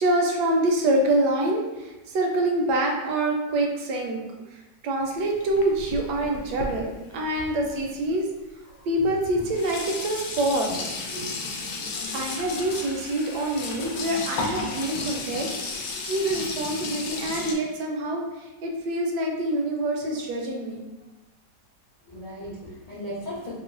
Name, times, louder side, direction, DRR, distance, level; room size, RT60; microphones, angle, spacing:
voice 1, 0.0-8.3 8.9-10.7 12.1-20.8, right 1 dB, 75° right, 1 dB, 1.1 m, -26 dB
Sink (filling or washing), 5.0-8.1 8.9-9.0 9.2-17.5, left 3 dB, 70° left, 0.9 m, -34 dB
voice 2, 8.7-9.1 11.1-11.3 22.1-23.5, equal, 85° left, -9 dB, 0.3 m, -37 dB
3.0 x 2.0 x 3.7 m, 1.1 s
omnidirectional pair, 1.9 m